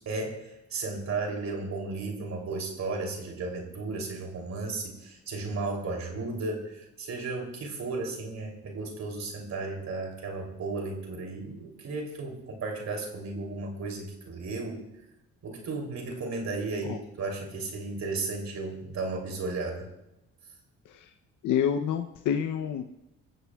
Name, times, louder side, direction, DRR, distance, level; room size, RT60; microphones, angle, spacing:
voice 1, 0.0-14.8 15.4-19.9, right 3 dB, 65° right, 2 dB, 3.2 m, -34 dB
voice 2, 21.4-22.8, left 8 dB, 80° left, 6 dB, 0.8 m, -27 dB
22.0 x 14.5 x 2.4 m, 0.89 s
cardioid pair, 90°, 30 cm